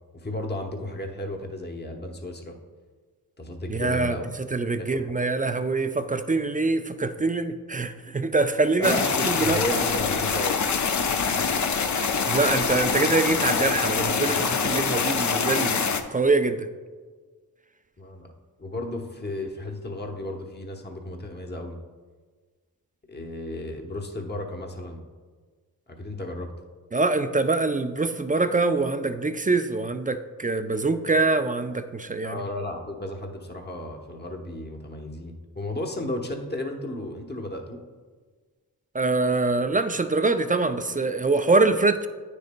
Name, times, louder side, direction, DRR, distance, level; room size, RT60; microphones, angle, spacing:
voice 1, 0.1-2.5 3.4-4.2 4.8-5.1 5.5-5.7 8.8-10.6 18.0-18.3 18.6-21.8 23.1-25.0 25.9-26.5 32.2-37.8, left 1 dB, 25° left, 3 dB, 1.0 m, -33 dB
voice 2, 3.7-9.6 12.2-16.7 26.9-32.4 38.9-42.1, right 3 dB, 25° right, 9 dB, 0.4 m, -24 dB
sound 1, 8.8-16.0, left 5 dB, 50° left, 0.6 m, -25 dB
9.2 x 6.5 x 2.2 m, 1.5 s
cardioid pair, 50°, 37 cm